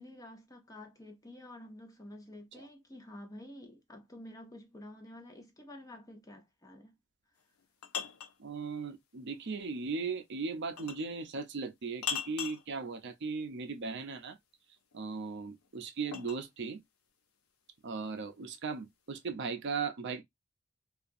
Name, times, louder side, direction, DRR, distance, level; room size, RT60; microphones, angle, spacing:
voice 1, 0.0-7.0, left 1 dB, 15° left, 0.7 m, -50 dB
sound 1, 7.4-8.4 10.8-11.1 12.0-12.7 14.9-16.4, left 8 dB, 90° left, 0.6 m, -39 dB
voice 2, 8.4-14.4 14.9-16.8 17.8-20.2, right 4 dB, 55° right, 0.5 m, -37 dB
2.8 x 2.4 x 2.5 m
head